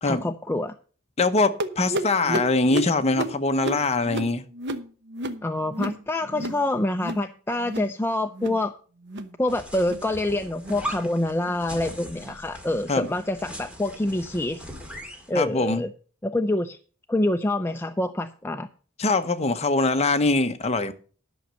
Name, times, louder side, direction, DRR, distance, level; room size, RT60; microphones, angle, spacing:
voice 1, 0.0-0.8 2.3-2.4 5.4-8.7 9.4-14.7 15.3-15.9 16.2-16.8 17.1-18.7, left 1 dB, 10° left, 0.4 m, -26 dB
voice 2, 1.2-4.4 12.9-13.1 15.3-15.8 19.0-20.9, left 3 dB, 30° left, 0.9 m, -23 dB
sound 1, 1.6-6.6 6.9-7.3 7.6-8.0 8.3-8.6 9.0-9.4 9.8-10.1 10.5-10.8 11.3-11.6 12.2-12.4 13.0-13.2 13.9-14.0 14.8-14.9, right 2 dB, 55° right, 1.0 m, -33 dB
sound 2, 9.5-15.3, equal, 5° right, 2.0 m, -39 dB
11.0 x 6.3 x 6.8 m
head